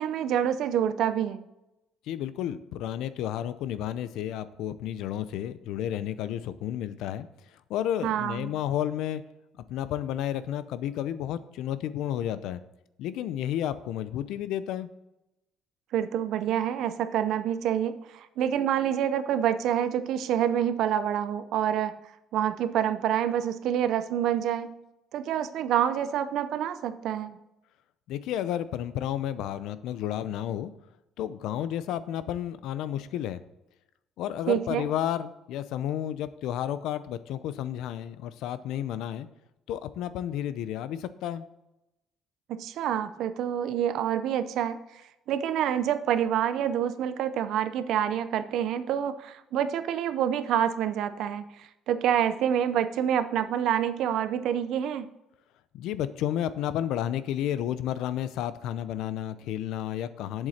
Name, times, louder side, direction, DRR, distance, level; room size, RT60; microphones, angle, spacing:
voice 1, 0.0-1.4 8.0-8.5 15.9-21.9 22.3-24.8 25.1-27.4 34.5-34.8 42.5-44.8 45.3-55.1, right 9 dB, 60° right, 11 dB, 0.6 m, -27 dB
voice 2, 2.1-9.2 9.7-12.6 13.0-14.9 28.1-30.7 31.2-33.4 34.2-39.3 39.7-41.5 55.7-60.5, left 11 dB, 75° left, 14 dB, 0.6 m, -31 dB
8.0 x 7.4 x 4.2 m, 0.91 s
cardioid pair, 160°, 0 cm